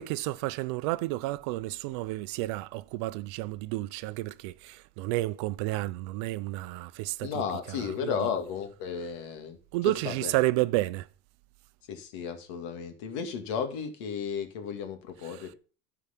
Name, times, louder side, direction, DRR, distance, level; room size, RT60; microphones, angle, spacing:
voice 1, 0.0-7.4 7.7-8.3 9.7-11.1 15.2-15.5, right 19 dB, 65° right, 0.5 m, -31 dB
voice 2, 7.2-9.6 9.8-10.3 11.9-15.6, left 7 dB, 90° left, 2.0 m, -34 dB
13.5 x 4.8 x 5.8 m
cardioid pair, 180°, 15 cm